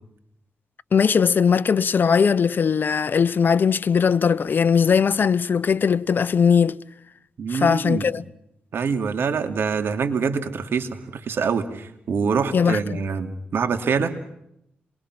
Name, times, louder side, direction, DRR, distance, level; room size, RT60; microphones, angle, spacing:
voice 1, 0.9-6.8 7.5-8.2 12.5-13.0, left 6 dB, 55° left, 0.9 m, -19 dB
voice 2, 7.4-8.1 8.7-14.1, right 5 dB, 75° right, 2.7 m, -25 dB
28.0 x 22.5 x 6.1 m
cardioid pair, 65°, 4 cm